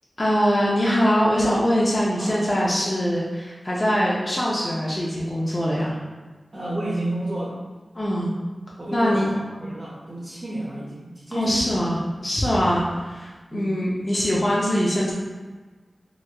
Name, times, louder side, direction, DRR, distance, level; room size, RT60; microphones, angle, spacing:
voice 1, 0.2-6.0 7.9-8.3 8.9-9.3 11.3-12.0 12.2-15.1, equal, 35° left, -6 dB, 0.6 m, -22 dB
voice 2, 6.5-7.6 8.8-11.8 12.5-12.7 13.5-13.8, right 1 dB, 45° right, -8 dB, 0.6 m, -31 dB
3.3 x 3.0 x 2.3 m, 1.3 s
wide cardioid pair, 75°, 0 cm